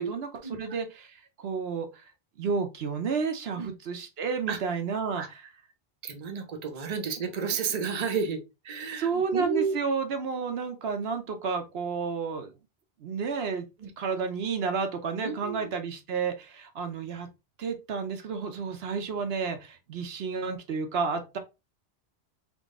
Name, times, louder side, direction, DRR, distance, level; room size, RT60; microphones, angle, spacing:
voice 1, 0.0-2.1 2.4-5.4 9.0-12.5 13.0-13.7 14.0-17.3 17.6-21.4, right 5 dB, 75° right, 1.0 m, -31 dB
voice 2, 6.0-9.7 13.8-13.9 15.2-15.7, right 5 dB, 45° right, 0.8 m, -31 dB
3.8 x 3.0 x 3.6 m
omnidirectional pair, 1.0 m